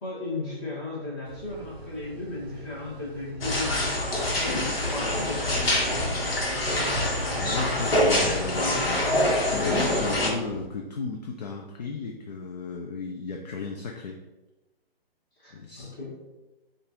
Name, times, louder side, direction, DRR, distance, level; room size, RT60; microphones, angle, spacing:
voice 1, 0.0-6.0 15.4-16.2, left 2 dB, 20° left, -6 dB, 1.3 m, -36 dB
sound 1, 1.2-10.7, right 2 dB, 25° right, 0.4 m, -43 dB
sound 2, 3.4-10.3, left 1 dB, 65° left, 1.2 m, -25 dB
voice 2, 7.4-9.1 9.4-14.2 15.5-15.9, left 4 dB, 45° left, 1 dB, 0.4 m, -34 dB
5.3 x 2.5 x 2.9 m, 1.1 s
figure-of-eight pair, 145°, 30 cm